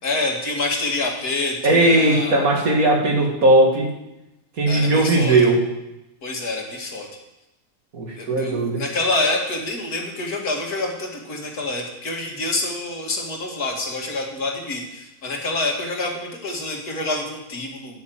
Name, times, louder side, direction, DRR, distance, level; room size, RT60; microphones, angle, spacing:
voice 1, 0.0-2.4 4.7-5.4 6.2-7.1 8.2-18.0, left 2 dB, 85° left, 1 dB, 2.7 m, -27 dB
voice 2, 1.6-3.9 4.6-5.6 7.9-8.8, right 2 dB, 70° right, 0 dB, 2.7 m, -17 dB
9.6 x 8.6 x 7.8 m, 0.92 s
omnidirectional pair, 1.6 m